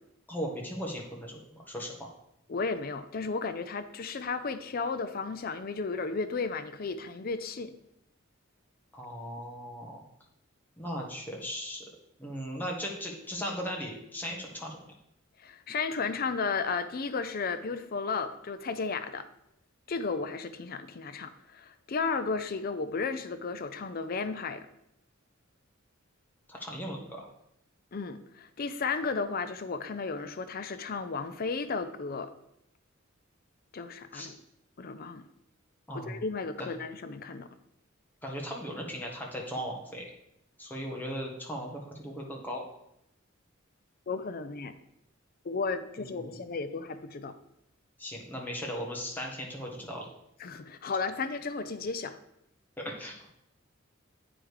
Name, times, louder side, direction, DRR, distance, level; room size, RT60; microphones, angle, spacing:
voice 1, 0.3-2.1 8.9-10.0 10.8-11.8 12.2-14.8 26.5-27.3 34.1-34.3 35.9-36.2 36.6-36.7 38.2-40.1 40.6-42.6 46.0-46.5 48.0-50.0 52.8-53.2, equal, 10° left, -1 dB, 1.4 m, -37 dB
voice 2, 2.5-7.7 15.4-19.3 19.9-24.7 27.9-32.3 33.7-34.4 34.8-35.2 35.9-37.5 44.1-44.7 45.4-47.3 50.4-52.2, left 4 dB, 45° left, 11 dB, 0.5 m, -34 dB
8.8 x 5.0 x 4.7 m, 0.78 s
head